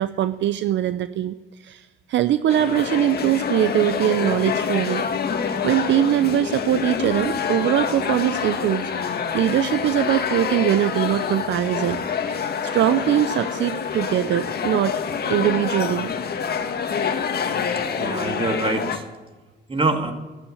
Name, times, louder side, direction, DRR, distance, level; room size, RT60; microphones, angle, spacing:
voice 1, 0.0-1.3 1.6-1.8 2.1-5.0 5.4-8.8 9.3-12.0 12.3-15.0 15.3-16.1, right 11 dB, 65° right, 13 dB, 0.6 m, -22 dB
sound 1, 2.5-19.0, left 6 dB, 50° left, 1.7 m, -26 dB
voice 2, 17.9-19.0 19.7-20.1, right 3 dB, 25° right, 5 dB, 2.3 m, -25 dB
13.0 x 11.0 x 9.8 m, 1.2 s
cardioid pair, 90°, 20 cm